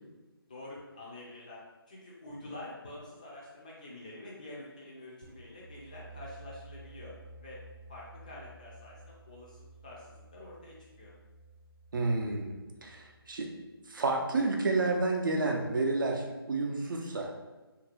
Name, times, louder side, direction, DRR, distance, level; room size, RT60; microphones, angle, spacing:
voice 1, 0.5-7.1 7.4-7.6 7.9-11.1, left 2 dB, 20° left, -5 dB, 0.4 m, -47 dB
sound 1, 5.2-14.8, right 2 dB, 30° right, 0.9 m, -53 dB
voice 2, 11.9-12.5 12.8-13.5 13.9-17.3, right 3 dB, 55° right, 2 dB, 0.5 m, -30 dB
2.7 x 2.5 x 2.9 m, 1.1 s
figure-of-eight pair, 160°, 13 cm